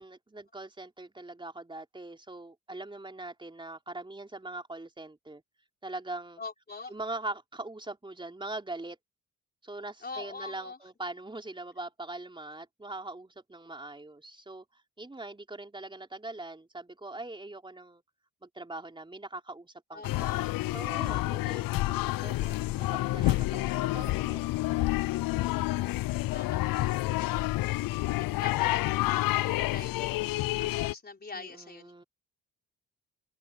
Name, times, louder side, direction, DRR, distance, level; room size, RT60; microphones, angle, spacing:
voice 1, 0.0-5.4 5.8-6.4 6.9-9.0 9.6-14.6 15.0-18.0 18.4-20.4 20.7-22.6 23.1-25.0 31.3-32.0, right 2 dB, 15° right, 3.8 m, -42 dB
voice 2, 6.4-6.9 10.0-10.8 19.9-20.5 26.3-27.8 28.1-30.3 30.6-31.9, left 4 dB, 30° left, 4.3 m, -44 dB
sound 1, 20.0-30.9, left 18 dB, 80° left, 0.5 m, -29 dB
cardioid pair, 90°, 34 cm